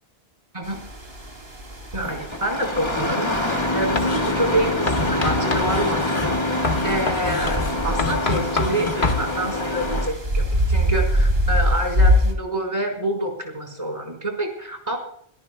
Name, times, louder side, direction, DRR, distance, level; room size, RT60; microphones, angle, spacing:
sound 1, 0.6-12.3, equal, 70° right, 2.9 m, -25 dB
voice 1, 1.9-6.3 6.8-15.0, right 1 dB, 30° right, 1 dB, 4.5 m, -27 dB
Engine starting, 2.0-10.1, left 2 dB, 25° left, 1.9 m, -25 dB
Writing, 4.0-4.3 4.9-9.3, left 3 dB, 55° left, 1.8 m, -26 dB
25.5 x 18.0 x 2.3 m, 0.63 s
omnidirectional pair, 1.0 m